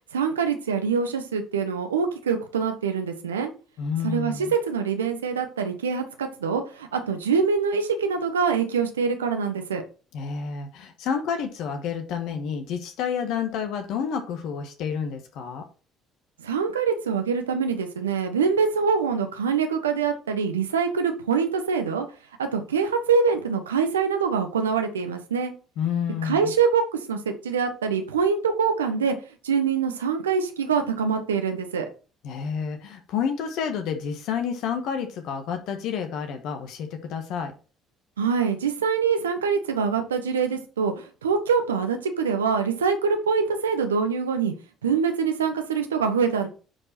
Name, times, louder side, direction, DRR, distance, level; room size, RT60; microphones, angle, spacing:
voice 1, 0.1-3.5 4.0-9.8 16.4-22.0 22.4-25.5 26.2-26.8 27.1-29.1 29.4-31.9 38.2-44.5 44.8-46.5, right 6 dB, 90° right, 6 dB, 1.2 m, -24 dB
voice 2, 3.8-4.5 10.1-15.6 25.8-26.5 32.2-37.5, left 7 dB, 65° left, 6 dB, 1.4 m, -29 dB
9.6 x 4.7 x 4.4 m, 0.35 s
hypercardioid pair, 55°, 0 cm